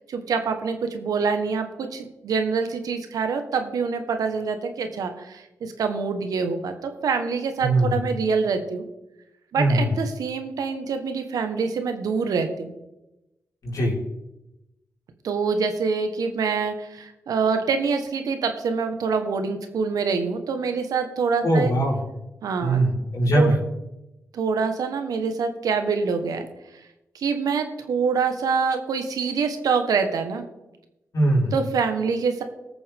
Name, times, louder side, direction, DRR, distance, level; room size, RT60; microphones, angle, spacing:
voice 1, 0.0-8.8 9.5-12.7 15.2-21.7 22.4-22.8 23.3-23.6 24.3-26.5 27.1-30.4 31.5-32.4, right 5 dB, 80° right, 7 dB, 1.3 m, -25 dB
voice 2, 7.6-8.0 9.6-9.9 13.6-13.9 21.4-22.0 22.6-23.6 31.1-31.5, right 1 dB, 65° left, -4 dB, 4.4 m, -21 dB
19.0 x 6.9 x 3.6 m, 0.94 s
supercardioid pair, 45°, 6 cm